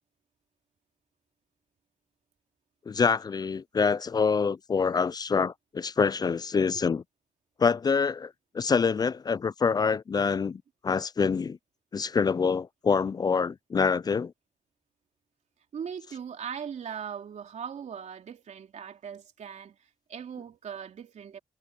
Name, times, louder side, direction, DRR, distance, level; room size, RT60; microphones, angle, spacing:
voice 1, 2.9-7.0 7.6-11.6 11.9-14.3, left 5 dB, 30° left, 0.3 m, -26 dB
voice 2, 15.7-19.8 20.1-21.4, right 7 dB, 60° right, 3.2 m, -39 dB
cardioid pair, 90°, 13 cm